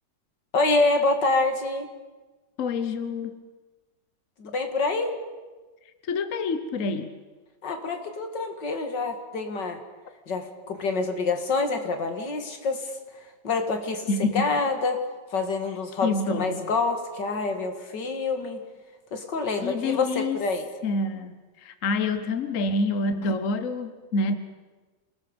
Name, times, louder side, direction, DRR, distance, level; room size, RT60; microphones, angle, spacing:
voice 1, 0.5-1.9 4.4-5.1 7.6-9.8 10.3-12.9 13.4-14.1 14.3-15.0 15.3-18.6 19.1-20.7, left 3 dB, 70° left, 5 dB, 2.6 m, -26 dB
voice 2, 2.6-3.3 6.1-7.1 14.1-14.5 16.0-16.6 19.6-20.4 20.8-24.4, left 3 dB, 50° left, 9 dB, 1.3 m, -27 dB
28.0 x 18.5 x 5.3 m, 1.3 s
omnidirectional pair, 1.9 m